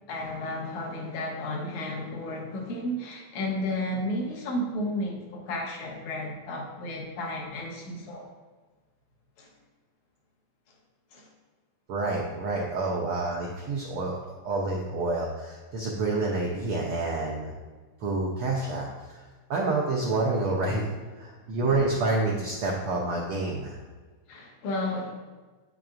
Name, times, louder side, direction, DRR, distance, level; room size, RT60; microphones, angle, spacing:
voice 1, 0.1-8.3 9.4-9.5 11.1-11.3 24.3-25.4, left 1 dB, 85° left, -1 dB, 2.6 m, -33 dB
voice 2, 11.9-14.1 14.4-17.5 18.0-19.2 19.5-20.9 21.2-23.8, right 2 dB, 80° right, -2 dB, 1.2 m, -28 dB
8.3 x 5.9 x 2.5 m, 1.3 s
omnidirectional pair, 3.4 m